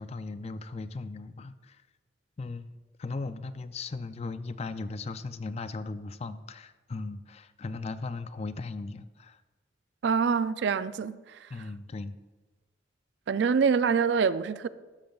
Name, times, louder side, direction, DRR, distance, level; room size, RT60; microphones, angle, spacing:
voice 1, 0.0-1.8 2.4-9.4 11.5-12.1, left 3 dB, 35° left, 0.4 m, -37 dB
voice 2, 10.0-11.5 13.3-14.7, right 6 dB, 65° right, 0.4 m, -25 dB
13.0 x 12.0 x 2.4 m
head